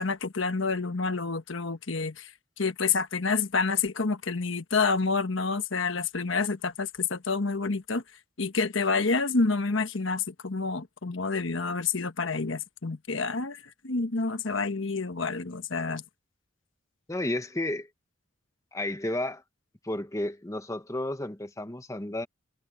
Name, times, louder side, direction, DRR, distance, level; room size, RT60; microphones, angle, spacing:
voice 1, 0.0-2.3 2.6-8.0 8.4-13.6 13.8-16.0, left 4 dB, 70° left, 1.2 m, -28 dB
voice 2, 17.1-17.9 18.7-19.4 19.8-22.3, left 1 dB, 15° left, 1.0 m, -32 dB
head